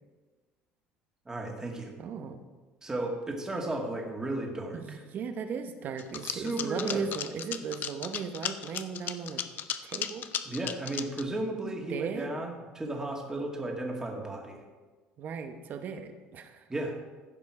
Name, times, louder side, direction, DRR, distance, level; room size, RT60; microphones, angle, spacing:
voice 1, 1.3-1.9 2.8-5.0 6.2-7.1 10.5-14.6 16.7-17.0, right 2 dB, 15° right, 1 dB, 2.0 m, -34 dB
voice 2, 2.0-2.4 4.7-9.4 9.8-10.3 11.8-12.3 15.2-16.7, right 6 dB, 50° right, 8 dB, 1.0 m, -36 dB
sound 1, 6.0-11.2, left 10 dB, 50° left, 0.6 m, -35 dB
15.0 x 5.4 x 4.9 m, 1.3 s
cardioid pair, 110°, 4 cm